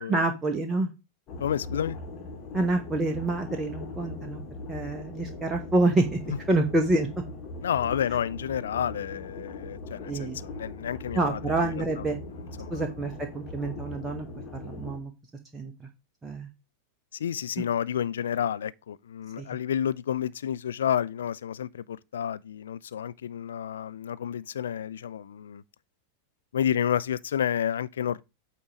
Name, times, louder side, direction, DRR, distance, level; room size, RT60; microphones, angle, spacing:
voice 1, 0.1-0.9 2.5-4.4 4.7-7.1 10.1-10.4 11.1-12.2 12.7-14.3 14.5-15.1 15.5-15.9 16.2-16.5 17.6-17.7 19.4-19.5, right 2 dB, 15° right, 1.0 m, -27 dB
sound 1, 1.3-15.0, left 2 dB, 35° left, 1.8 m, -40 dB
voice 2, 1.4-2.0 7.6-11.7 12.6-12.8 17.2-25.6 26.5-28.2, left 9 dB, 65° left, 0.3 m, -30 dB
8.6 x 3.0 x 5.0 m
figure-of-eight pair, 90°, 0 cm